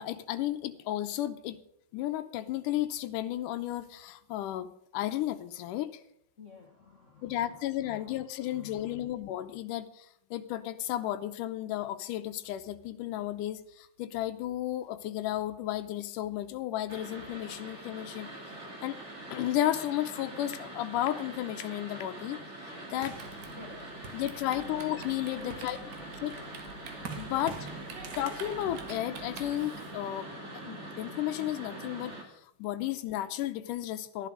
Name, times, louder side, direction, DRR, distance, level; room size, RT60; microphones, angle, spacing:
voice 1, 0.0-1.6 1.9-6.0 7.2-18.3 18.8-19.0 19.3-22.4 22.9-23.2 24.1-25.8 26.2-26.4 27.2-27.5 28.2-30.3 30.6-34.3, left 13 dB, 85° left, 9 dB, 2.4 m, -33 dB
voice 2, 6.4-9.0 23.5-24.0 24.4-24.5 25.3-26.0 27.2-27.7, left 3 dB, 35° left, 2 dB, 1.3 m, -51 dB
sound 1, 16.9-32.2, right 1 dB, 25° right, 2.6 m, -44 dB
sound 2, 23.0-24.8 25.3-29.9, right 5 dB, 45° right, 1.5 m, -46 dB
Typing, 23.1-30.0, right 4 dB, 80° right, 3.1 m, -48 dB
14.0 x 11.0 x 6.3 m, 0.68 s
omnidirectional pair, 3.7 m